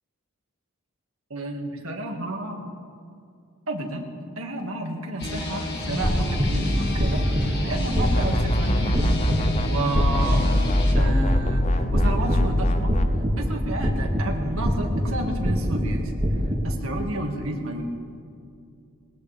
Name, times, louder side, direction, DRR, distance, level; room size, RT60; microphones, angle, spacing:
voice 1, 1.3-2.6 3.7-4.1 4.4-7.2 7.6-9.2 9.7-10.4 11.0-12.9 13.3-16.1 16.6-17.8, right 1 dB, 70° right, 2 dB, 1.9 m, -31 dB
sound 1, 5.2-10.9, left 1 dB, 50° left, 2.0 m, -29 dB
sound 2, 5.9-16.7, equal, 30° right, 2.0 m, -26 dB
sound 3, 8.0-9.7 10.0-13.1, left 1 dB, 30° left, 0.7 m, -23 dB
21.0 x 19.5 x 3.4 m, 2.4 s
head